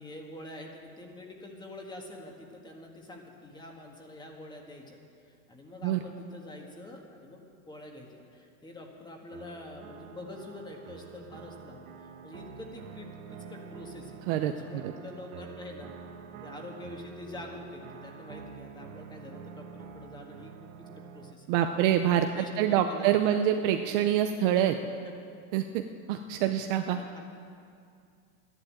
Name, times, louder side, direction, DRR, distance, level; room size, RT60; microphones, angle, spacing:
voice 1, 0.0-5.0 5.3-15.9 16.4-21.5 22.1-23.4 25.0-25.1 26.4-26.6 26.9-27.3, left 1 dB, 10° left, 1 dB, 1.7 m, -46 dB
sound 1, 9.3-21.3, right 6 dB, 70° right, 1.6 m, -47 dB
voice 2, 14.3-14.9 21.5-24.8 25.5-27.0, right 10 dB, 40° right, 6 dB, 0.6 m, -26 dB
13.0 x 11.0 x 8.7 m, 2.3 s
supercardioid pair, 150°, 43 cm